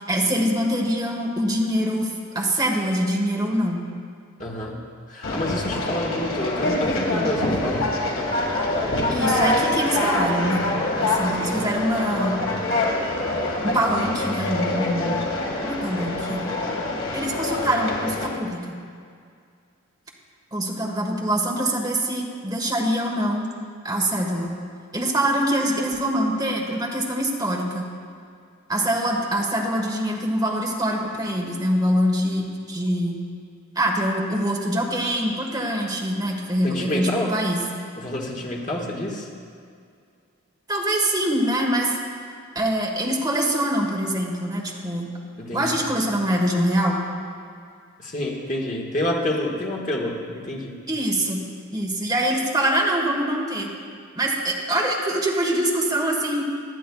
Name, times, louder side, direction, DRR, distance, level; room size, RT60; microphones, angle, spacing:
voice 1, 0.0-3.8 9.1-10.6 11.0-12.4 13.6-15.3 15.6-16.5 17.1-18.8 20.5-23.5 23.8-24.6 24.9-27.9 28.7-33.2 33.7-37.6 40.7-41.9 42.5-45.1 45.5-47.0 50.9-51.4 51.7-53.7 54.2-56.4, right 1 dB, 20° right, -1 dB, 1.3 m, -24 dB
voice 2, 4.4-7.9 36.6-37.3 38.0-39.3 45.4-45.7 48.0-50.8, left 1 dB, 35° left, -2 dB, 1.5 m, -28 dB
Conversation, 5.2-18.3, left 2 dB, 75° left, 1.8 m, -25 dB
18.5 x 11.0 x 2.3 m, 2.2 s
head